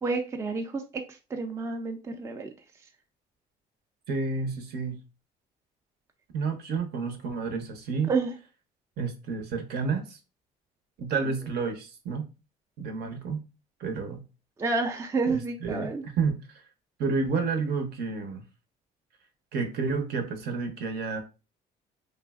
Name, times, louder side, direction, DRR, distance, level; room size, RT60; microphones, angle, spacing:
voice 1, 0.0-2.5 8.1-8.3 11.2-11.3 14.6-16.0, right 3 dB, 15° right, 0.3 m, -30 dB
voice 2, 4.1-5.0 6.3-8.1 9.0-10.2 11.0-12.3 12.8-13.4 13.8-14.2 15.3-16.4 17.0-18.4 19.5-21.2, right 4 dB, 70° right, 0.7 m, -30 dB
3.2 x 2.6 x 2.3 m
cardioid pair, 110°, 17 cm